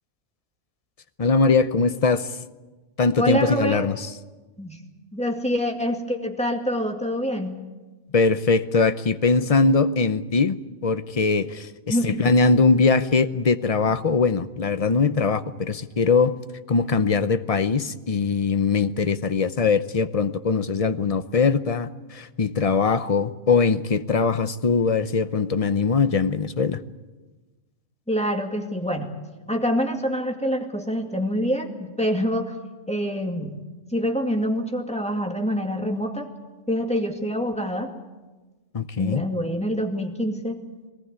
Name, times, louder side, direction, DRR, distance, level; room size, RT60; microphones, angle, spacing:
voice 1, 1.2-2.3 3.0-3.9 8.1-10.6 10.8-16.4 16.7-26.8 38.7-39.2, left 4 dB, 35° left, 12 dB, 0.7 m, -21 dB
voice 2, 3.2-3.9 4.6-4.8 5.1-7.6 11.9-12.3 28.1-29.1 29.5-32.5 32.9-33.6 33.9-36.3 36.7-37.9 39.0-40.6, equal, 5° left, 3 dB, 2.3 m, -26 dB
21.0 x 19.0 x 9.6 m, 1.2 s
omnidirectional pair, 1.4 m